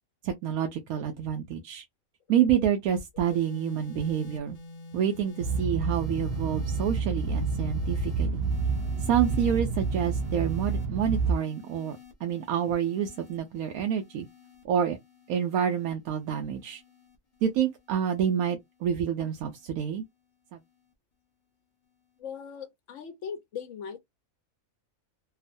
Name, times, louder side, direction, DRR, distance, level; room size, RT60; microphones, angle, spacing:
voice 1, 0.2-1.8 2.3-4.6 4.9-8.5 9.0-14.3 14.6-15.0 15.3-16.8 17.4-20.0 20.5-20.6, right 9 dB, 90° right, 1.1 m, -28 dB
sound 1, 3.2-19.7 20.6-20.9, left 3 dB, 40° left, 0.5 m, -49 dB
sound 2, 5.4-11.4, right 4 dB, 65° right, 0.6 m, -29 dB
voice 2, 22.2-24.0, left 7 dB, 65° left, 0.9 m, -39 dB
2.9 x 2.1 x 2.5 m
omnidirectional pair, 1.5 m